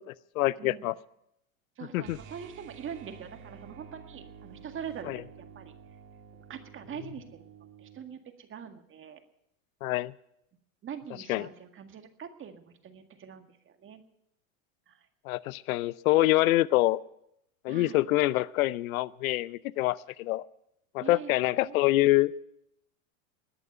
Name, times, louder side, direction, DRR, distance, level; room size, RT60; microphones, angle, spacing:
voice 1, 0.4-0.9 1.9-2.2 5.1-5.2 9.8-10.1 11.3-11.4 15.2-17.0 17.6-20.4 20.9-22.3, left 17 dB, 85° left, 20 dB, 0.6 m, -25 dB
voice 2, 1.8-5.7 6.3-7.5 7.8-9.2 10.8-14.0 14.9-15.1 17.7-18.0 21.0-21.3 21.7-21.8, right 8 dB, 30° right, 6 dB, 1.9 m, -43 dB
sound 1, 2.0-8.1, right 7 dB, 45° right, 2.0 m, -50 dB
20.5 x 7.0 x 9.1 m, 0.79 s
supercardioid pair, 115°, 41 cm